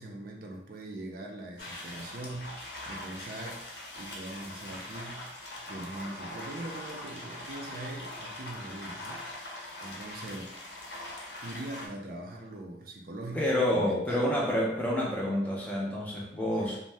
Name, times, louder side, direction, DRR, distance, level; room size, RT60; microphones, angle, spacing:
voice 1, 0.0-3.6 3.9-9.2 9.5-10.6 11.4-14.2 16.6-16.8, right 1 dB, 50° right, 0 dB, 0.4 m, -42 dB
sound 1, 1.6-11.9, left 1 dB, 65° left, 0.7 m, -42 dB
voice 2, 13.3-16.8, left 1 dB, 10° left, -4 dB, 0.5 m, -28 dB
2.6 x 2.1 x 3.3 m, 0.77 s
head